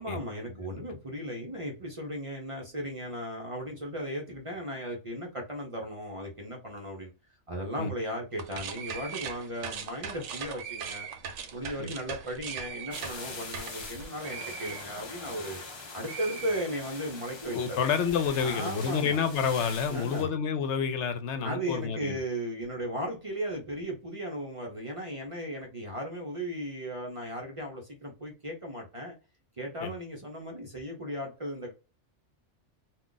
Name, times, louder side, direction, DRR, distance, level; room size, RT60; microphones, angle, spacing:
voice 1, 0.0-7.1 7.5-11.1 11.5-15.6 15.9-17.8 18.4-19.2 19.9-20.3 21.4-29.2 29.6-31.7, equal, 35° right, 0.6 m, -36 dB
sound 1, 8.3-15.7 16.0-17.2, right 7 dB, 80° right, 0.9 m, -40 dB
sound 2, 12.9-20.2, left 3 dB, 40° left, 0.4 m, -43 dB
voice 2, 17.5-22.2 29.8-29.9, left 6 dB, 75° left, 0.9 m, -29 dB
2.3 x 2.3 x 3.8 m
omnidirectional pair, 1.2 m